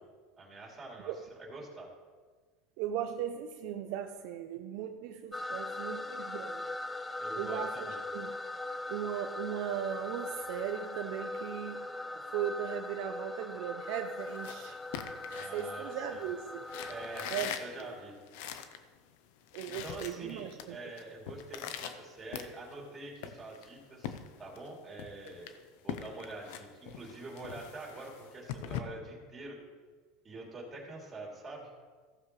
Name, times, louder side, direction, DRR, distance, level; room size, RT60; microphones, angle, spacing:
voice 1, 0.4-1.1 1.4-1.9 7.2-8.0 15.3-16.2 16.9-18.2 19.7-25.5 25.8-29.6 30.2-31.7, right 2 dB, 20° right, -2 dB, 3.1 m, -45 dB
voice 2, 2.8-6.7 7.4-8.3 8.9-11.9 12.3-14.8 15.5-16.6 17.3-17.5 17.8-17.9 19.5-20.9, right 10 dB, 65° right, 6 dB, 0.6 m, -38 dB
sound 1, 5.3-17.4, left 2 dB, 10° left, 0.5 m, -40 dB
sound 2, 14.2-16.2 16.6-18.8 19.2-19.3 19.4-20.7 21.0-22.9 23.2-24.7 25.0-28.8, left 9 dB, 75° left, 0.7 m, -42 dB
15.0 x 7.3 x 3.2 m, 1.4 s
supercardioid pair, 115°, 0 cm